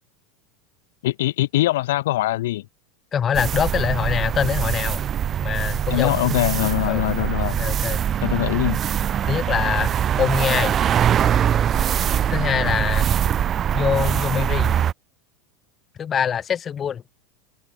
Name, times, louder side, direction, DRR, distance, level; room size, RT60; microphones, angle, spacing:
voice 1, 1.0-2.6 5.9-7.6 8.2-8.8, left 16 dB, 75° left, 0.7 m, -22 dB
voice 2, 3.1-5.0 5.4-6.1 6.9-7.0 7.6-8.0 9.2-10.8 12.3-13.1 13.7-14.7 16.0-17.0, left 8 dB, 30° left, 3.2 m, -24 dB
sound 1, 3.3-14.9, right 9 dB, 35° right, 0.8 m, -22 dB
hypercardioid pair, 95°, 0 cm